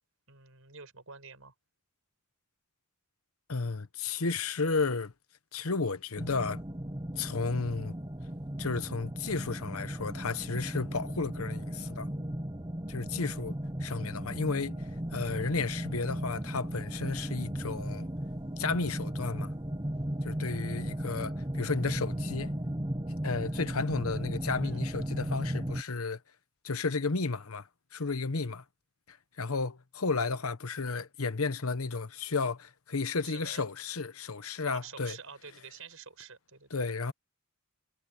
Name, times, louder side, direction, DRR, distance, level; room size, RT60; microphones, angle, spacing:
voice 1, 0.3-1.5 24.6-24.8 33.2-33.6 34.7-36.8, right 5 dB, 70° right, 7.1 m, -48 dB
voice 2, 3.5-5.1 5.5-6.6 7.2-7.9 8.6-12.1 12.9-13.5 13.8-18.1 18.6-19.5 20.2-22.5 23.2-26.2 26.6-28.6 29.1-35.2 36.7-37.1, left 4 dB, 80° left, 1.1 m, -33 dB
sound 1, 6.2-25.8, right 1 dB, 20° right, 1.2 m, -36 dB
head